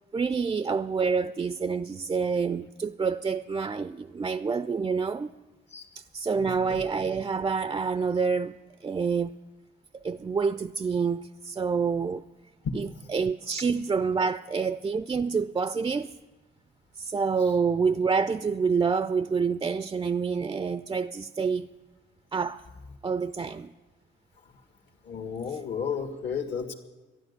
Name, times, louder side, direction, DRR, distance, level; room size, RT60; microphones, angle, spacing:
voice 1, 0.1-5.3 6.0-9.3 10.0-12.2 12.7-16.1 17.0-21.7 22.3-22.6 23.0-23.7, right 5 dB, 20° right, 0.4 m, -27 dB
voice 2, 6.3-6.8 13.7-13.8 17.4-17.5 24.4-24.5 25.0-26.7, left 6 dB, 65° left, 1.7 m, -34 dB
13.0 x 11.0 x 8.1 m
cardioid pair, 90°, 20 cm